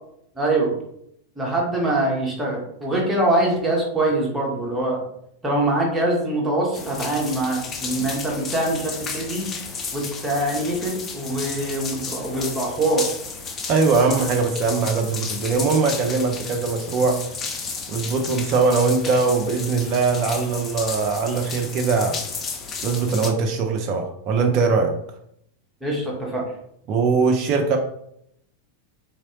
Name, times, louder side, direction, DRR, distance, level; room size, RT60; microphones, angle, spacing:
voice 1, 0.4-0.7 1.4-5.0 5.4-9.5 9.9-13.0 25.8-26.5, right 1 dB, 10° right, -3 dB, 1.3 m, -23 dB
sound 1, 6.7-23.3, left 5 dB, 25° left, 0.6 m, -33 dB
voice 2, 13.7-17.2 17.9-22.2 22.8-24.9 26.9-27.8, right 4 dB, 40° right, 3 dB, 0.5 m, -21 dB
3.5 x 3.0 x 2.9 m, 0.72 s
figure-of-eight pair, 90°, 0 cm